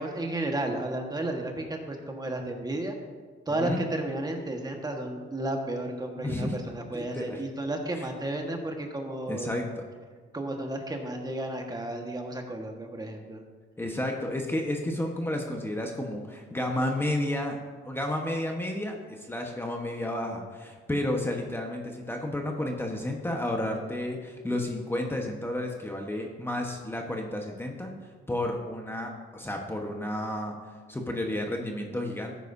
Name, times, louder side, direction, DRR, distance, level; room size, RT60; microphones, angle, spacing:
voice 1, 0.0-3.0 3.5-9.6 10.3-13.4, right 1 dB, 20° right, 2 dB, 1.5 m, -33 dB
voice 2, 6.2-6.5 6.9-7.4 8.0-8.1 9.3-9.6 13.8-17.6 17.8-30.6 30.9-32.4, left 1 dB, 10° left, 1 dB, 1.2 m, -31 dB
14.0 x 9.1 x 2.7 m, 1.5 s
cardioid pair, 90°, 20 cm